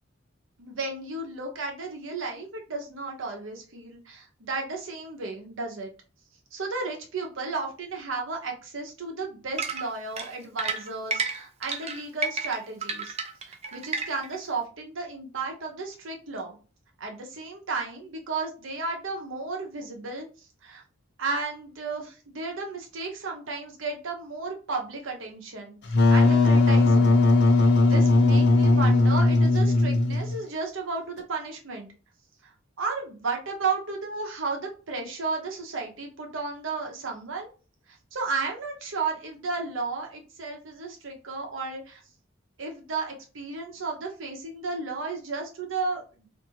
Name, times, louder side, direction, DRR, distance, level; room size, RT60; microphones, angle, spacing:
voice 1, 0.6-5.9 6.5-13.2 13.5-16.6 17.0-20.8 21.2-25.7 26.1-27.2 27.5-31.9 32.4-32.5 32.8-37.5 37.9-42.0 42.6-46.3, right 3 dB, 75° right, 1 dB, 0.8 m, -33 dB
sound 1, 9.6-14.4, right 4 dB, 35° right, 0.4 m, -31 dB
Wind instrument woodwind instrument, 25.9-30.4, left 2 dB, 60° left, 0.5 m, -19 dB
2.6 x 2.5 x 2.8 m, 0.35 s
head